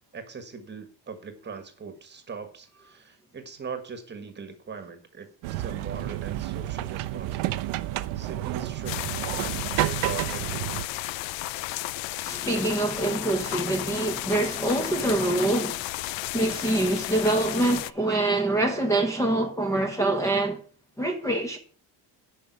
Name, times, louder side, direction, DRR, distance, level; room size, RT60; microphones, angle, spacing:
voice 1, 0.1-7.8 8.1-9.0 9.3-10.8, right 5 dB, 25° right, 1.5 m, -41 dB
sound 1, 5.4-10.9, right 15 dB, 85° right, 0.9 m, -30 dB
sound 2, 8.9-17.9, left 17 dB, 75° left, 0.6 m, -33 dB
voice 2, 12.2-15.9 16.3-20.6 21.0-21.6, right 2 dB, 5° left, 1.0 m, -25 dB
10.0 x 5.6 x 8.0 m
cardioid pair, 165°, 46 cm